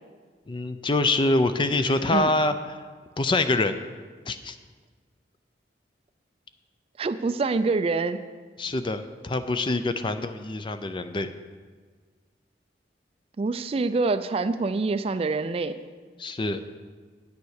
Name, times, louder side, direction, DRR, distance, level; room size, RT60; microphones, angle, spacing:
voice 1, 0.5-2.8 3.2-3.8 4.3-4.6 8.6-11.3 16.2-16.6, left 2 dB, 30° left, 10 dB, 0.5 m, -25 dB
voice 2, 7.0-8.2 13.4-15.7, right 3 dB, 35° right, 12 dB, 0.3 m, -25 dB
9.3 x 6.9 x 6.5 m, 1.5 s
head